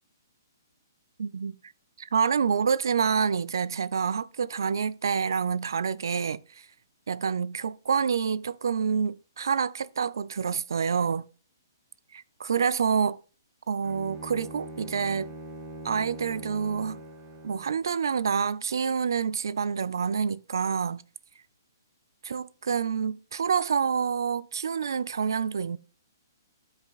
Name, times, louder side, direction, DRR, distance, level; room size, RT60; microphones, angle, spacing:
voice 1, 1.2-1.6 2.0-6.7 7.1-11.3 12.1-13.2 13.7-15.3 15.8-17.0 17.4-21.0 22.2-25.8, right 6 dB, 80° right, 0.4 m, -27 dB
Bowed string instrument, 13.8-17.9, right 1 dB, 20° right, 0.8 m, -43 dB
13.0 x 4.8 x 2.3 m
hypercardioid pair, 160°, 2 cm